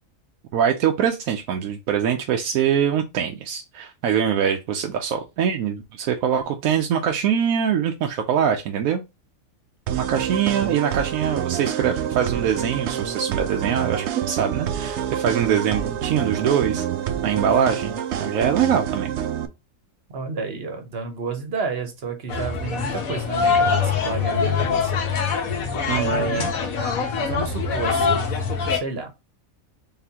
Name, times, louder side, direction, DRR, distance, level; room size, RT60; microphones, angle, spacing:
voice 1, 0.5-9.0 9.9-16.8 17.2-19.1 25.9-26.1 26.4-26.5, right 8 dB, 85° right, 1.0 m, -23 dB
sound 1, 9.9-19.5, right 9 dB, 65° right, 0.8 m, -27 dB
voice 2, 20.1-25.0 25.3-26.5 27.1-28.2 28.7-29.1, right 4 dB, 50° right, 1.1 m, -30 dB
sound 2, 22.3-28.8, left 5 dB, 80° left, 1.4 m, -23 dB
4.0 x 3.6 x 2.8 m
omnidirectional pair, 1.5 m